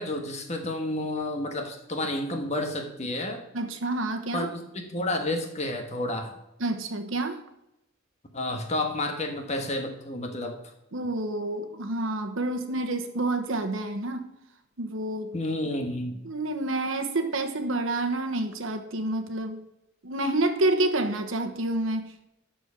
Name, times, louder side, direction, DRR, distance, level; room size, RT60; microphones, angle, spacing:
voice 1, 0.0-3.4 4.3-4.6 4.9-6.3 8.3-10.6 15.3-16.2, left 1 dB, 35° left, 4 dB, 1.4 m, -30 dB
voice 2, 3.5-4.5 6.6-7.4 10.9-14.3 14.8-15.3 16.2-19.6 20.0-22.0, right 2 dB, 70° right, 6 dB, 1.2 m, -28 dB
12.5 x 4.5 x 5.9 m, 0.84 s
head